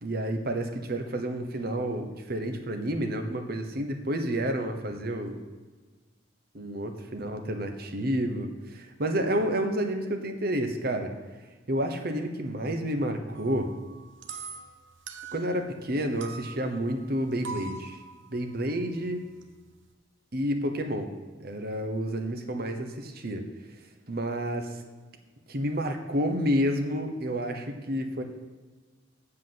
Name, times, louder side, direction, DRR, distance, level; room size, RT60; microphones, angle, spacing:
voice 1, 0.0-5.4 6.5-11.1 11.7-13.7 15.3-18.0 18.3-19.2 20.3-21.1 21.4-23.5 24.1-24.7 25.5-28.2, equal, 55° right, 5 dB, 1.0 m, -30 dB
sound 1, 13.3-15.9 16.2-19.9, right 4 dB, 85° right, 0.8 m, -44 dB
7.7 x 6.1 x 7.7 m, 1.4 s
head